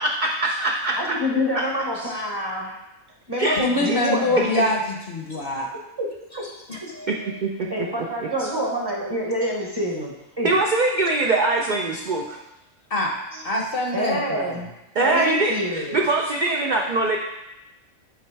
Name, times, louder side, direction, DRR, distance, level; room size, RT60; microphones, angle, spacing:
voice 1, 0.0-1.2 1.5-1.7 2.0-2.1 3.4-3.6 4.1-4.4 7.1-7.5 8.4-8.5 10.4-12.4 15.0-17.2, right 2 dB, 65° right, 1 dB, 0.4 m, -23 dB
voice 2, 1.0-2.8 3.3-4.7 6.0-6.1 6.4-6.5 6.8-7.4 7.7-10.6 13.3-13.4 13.9-14.7 15.0-16.0, equal, 20° right, -2 dB, 0.8 m, -27 dB
voice 3, 3.6-4.8 5.1-5.7 6.7-6.8 12.9-13.2 13.4-14.6, left 2 dB, 50° left, 0 dB, 0.8 m, -24 dB
8.6 x 3.1 x 4.6 m, 0.93 s
omnidirectional pair, 1.4 m